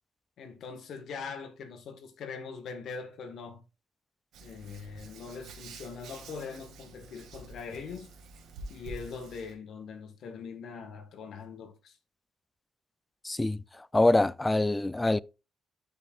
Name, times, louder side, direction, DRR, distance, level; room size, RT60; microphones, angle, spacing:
voice 1, 0.4-3.6 4.4-8.1 8.7-12.0, left 5 dB, 70° left, 1.6 m, -42 dB
Hands, 4.3-9.5, right 2 dB, 75° right, 2.2 m, -48 dB
voice 2, 13.2-13.6 13.9-15.2, left 2 dB, 15° left, 0.4 m, -24 dB
12.0 x 5.4 x 2.5 m
cardioid pair, 90°, 0 cm